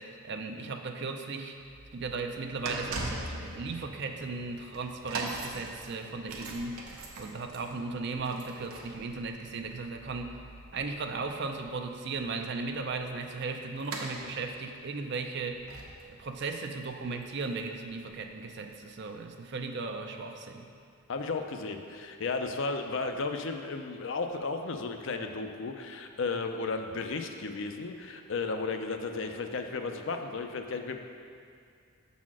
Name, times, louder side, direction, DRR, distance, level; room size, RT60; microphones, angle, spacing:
voice 1, 0.0-1.6 1.9-10.4 10.7-15.7 16.1-20.7, right 4 dB, 50° right, 5 dB, 0.5 m, -36 dB
sound 1, 1.6-18.5 19.2-19.3, right 2 dB, 80° right, 0.9 m, -43 dB
voice 2, 21.1-31.0, left 3 dB, 60° left, 5 dB, 0.5 m, -34 dB
7.3 x 4.2 x 6.0 m, 2.3 s
head